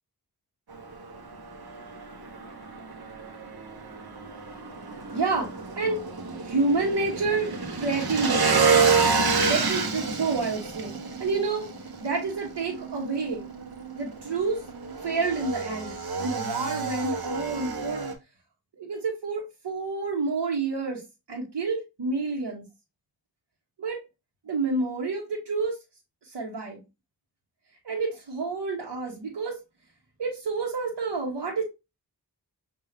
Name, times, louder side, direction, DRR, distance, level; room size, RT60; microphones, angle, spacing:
Motorcycle / Engine, 0.7-18.1, right 4 dB, 65° right, 1.1 m, -29 dB
voice 1, 5.1-6.1 6.4-8.6 9.4-11.7 12.0-13.4 14.0-14.6 15.0-18.1 18.8-21.0 21.3-22.6 23.8-24.0 24.4-25.8 26.2-26.8 27.8-29.6 30.2-31.6, right 3 dB, 80° right, -3 dB, 1.2 m, -29 dB
6.5 x 2.7 x 2.8 m, 0.25 s
cardioid pair, 45°, 40 cm